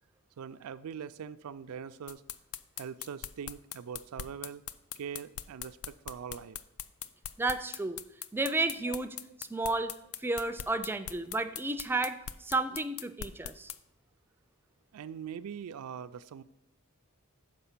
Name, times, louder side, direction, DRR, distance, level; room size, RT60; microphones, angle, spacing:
voice 1, 0.4-2.2 2.8-4.6 5.0-6.6 8.9-9.0 14.9-16.4, right 7 dB, 85° right, 14 dB, 0.4 m, -42 dB
sound 1, 2.1-13.8, left 10 dB, 70° left, 0.4 m, -41 dB
voice 2, 7.4-8.0 8.3-9.2 9.5-9.9 10.2-13.7, right 2 dB, 10° right, 10 dB, 0.3 m, -32 dB
6.8 x 5.0 x 5.7 m, 0.87 s
head